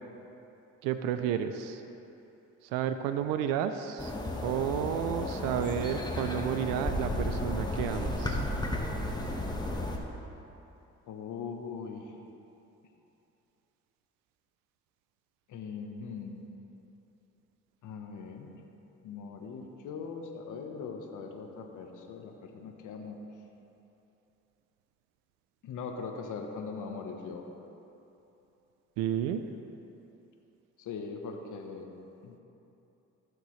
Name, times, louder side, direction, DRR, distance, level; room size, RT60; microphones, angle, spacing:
voice 1, 0.8-1.8 2.6-4.1 4.4-8.5 29.0-29.4, right 9 dB, 90° right, 9 dB, 0.5 m, -31 dB
sound 1, 4.0-10.0, left 1 dB, 10° left, 1.2 m, -33 dB
voice 2, 11.1-12.1 15.5-16.4 17.8-18.5 19.0-23.2 25.6-27.4 30.8-31.9 32.2-32.4, left 5 dB, 65° left, 3 dB, 1.1 m, -40 dB
15.5 x 6.5 x 3.2 m, 2.9 s
supercardioid pair, 65°, 33 cm